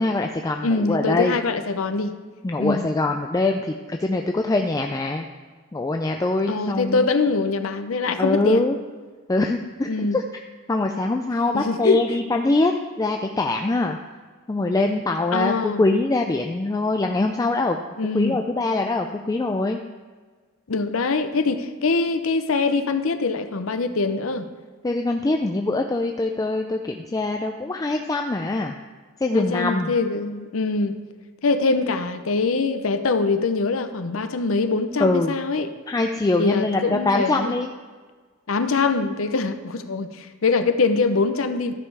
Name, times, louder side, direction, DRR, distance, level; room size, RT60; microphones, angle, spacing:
voice 1, 0.0-1.4 2.4-5.3 5.7-7.1 8.2-8.8 9.3-10.2 10.7-12.7 13.0-14.0 14.5-17.8 18.1-19.8 24.8-28.8 29.2-29.9 35.0-35.3 35.9-37.7, left 2 dB, 15° left, 4 dB, 0.4 m, -23 dB
voice 2, 0.6-2.2 2.6-2.8 6.5-8.7 9.9-10.2 11.5-12.2 15.3-15.8 18.0-18.4 20.7-24.5 29.3-31.0 31.4-35.7 36.4-37.6 38.5-41.7, left 4 dB, 75° left, 9 dB, 0.7 m, -23 dB
13.0 x 5.5 x 4.7 m, 1.5 s
head